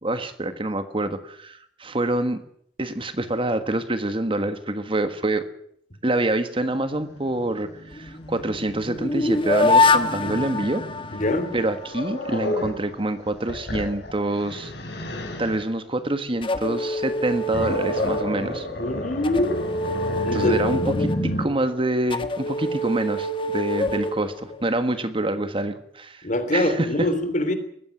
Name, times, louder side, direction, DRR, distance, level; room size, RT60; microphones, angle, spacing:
voice 1, 0.0-2.4 2.8-5.5 6.0-10.8 11.5-15.0 15.4-18.7 20.3-26.3 26.5-27.1, right 1 dB, 30° right, 10 dB, 1.5 m, -26 dB
Growling, 6.7-12.8 13.3-15.6 17.0-21.5, left 1 dB, 70° left, 5.7 m, -32 dB
sound 1, 7.9-11.9 16.4-18.7 19.2-24.9, left 2 dB, 30° left, 1.5 m, -25 dB
voice 2, 11.1-11.6 18.8-19.6 20.2-20.5 26.2-27.5, left 1 dB, 45° left, 10 dB, 3.2 m, -24 dB
19.5 x 15.5 x 10.0 m, 0.69 s
head